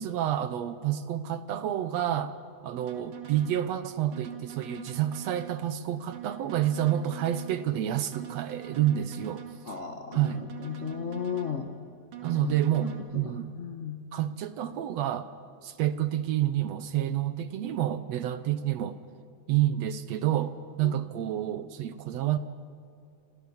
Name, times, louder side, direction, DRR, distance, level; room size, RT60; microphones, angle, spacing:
voice 1, 0.0-2.3 2.6-9.7 10.1-10.5 12.2-13.6 14.1-15.3 15.6-19.0 19.5-22.4, right 11 dB, 70° right, 12 dB, 1.8 m, -29 dB
sound 1, 2.8-3.6 4.1-5.6 6.1-7.6 8.1-9.6 10.1-11.6 12.1-13.0, right 11 dB, 90° right, 3.4 m, -43 dB
voice 2, 9.6-11.7 12.4-12.5 12.8-12.9 13.2-14.0 20.8-21.0, left 7 dB, 60° left, 6 dB, 0.7 m, -35 dB
29.0 x 25.0 x 7.2 m, 2.4 s
omnidirectional pair, 3.5 m